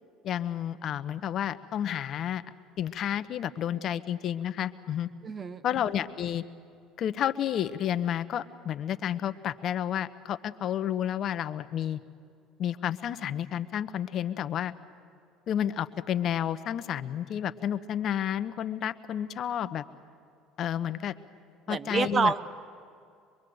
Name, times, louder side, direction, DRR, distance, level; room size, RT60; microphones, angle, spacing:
voice 1, 0.2-2.4 2.8-5.1 5.6-6.4 7.0-12.0 12.6-14.7 15.5-19.8 20.6-21.1 21.7-22.3, left 10 dB, 55° left, 13 dB, 1.0 m, -31 dB
voice 2, 5.2-5.6 21.7-22.4, right 5 dB, 35° right, 12 dB, 1.2 m, -27 dB
25.0 x 23.0 x 7.9 m, 2.3 s
hypercardioid pair, 75°, 0 cm